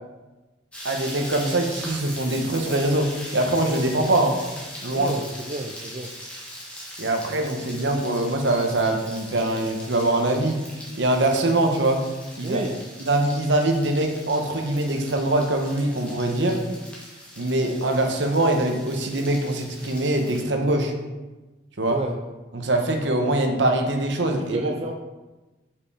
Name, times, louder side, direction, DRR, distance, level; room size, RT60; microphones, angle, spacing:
sound 1, 0.7-20.4, equal, 5° left, 1.3 m, -40 dB
voice 1, 0.8-4.4 4.8-5.1 7.0-10.6 11.0-12.0 12.4-12.6 13.0-16.6 17.4-20.9 21.8-22.0 22.5-24.6, right 1 dB, 70° right, 4 dB, 1.0 m, -23 dB
voice 2, 4.9-6.1 12.4-12.8 21.9-22.1 24.4-24.9, right 2 dB, 30° right, 3 dB, 0.4 m, -31 dB
5.5 x 5.1 x 4.9 m, 1.1 s
head